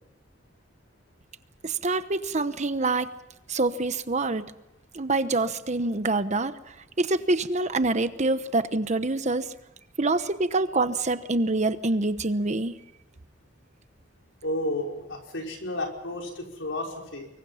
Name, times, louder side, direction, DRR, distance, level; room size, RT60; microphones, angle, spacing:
voice 1, 1.6-3.1 3.5-4.4 4.9-6.5 7.0-9.5 10.0-12.7, right 2 dB, 40° right, 12 dB, 1.0 m, -26 dB
voice 2, 14.4-17.3, left 1 dB, 70° left, 1 dB, 5.5 m, -32 dB
25.0 x 23.0 x 5.8 m, 0.89 s
head